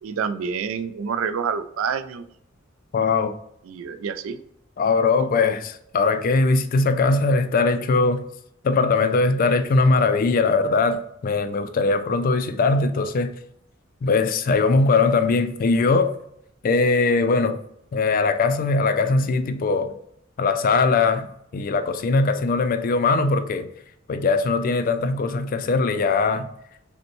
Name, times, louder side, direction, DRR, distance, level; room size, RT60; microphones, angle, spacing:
voice 1, 0.0-2.2 3.7-4.4 5.2-5.4, right 6 dB, 80° right, 0.3 m, -28 dB
voice 2, 2.9-3.3 4.8-8.2 8.6-13.3 14.0-16.1 16.6-17.6 17.9-19.9 20.4-23.7 24.1-26.5, left 3 dB, 45° left, 0.3 m, -20 dB
5.2 x 2.1 x 3.0 m
head